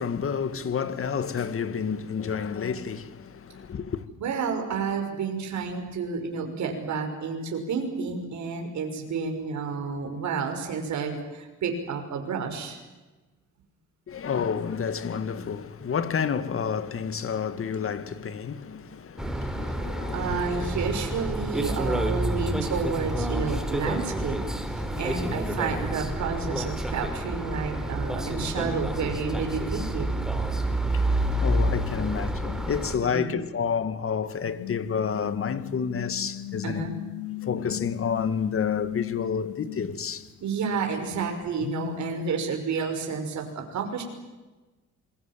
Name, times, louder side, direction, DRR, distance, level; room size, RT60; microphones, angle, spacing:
voice 1, 0.0-4.1 14.1-20.6 24.8-25.3 30.6-36.8 37.4-40.3, left 6 dB, 45° left, 2.1 m, -30 dB
voice 2, 4.1-12.8 20.1-24.4 24.7-30.1 33.0-33.3 36.6-37.0 40.4-44.0, right 5 dB, 65° right, 5.9 m, -30 dB
sound 1, 19.2-33.0, right 1 dB, ahead, 4.2 m, -29 dB
sound 2, 34.5-40.3 41.4-42.4, left 14 dB, 75° left, 1.1 m, -36 dB
27.5 x 22.5 x 7.6 m
cardioid pair, 90°, 30 cm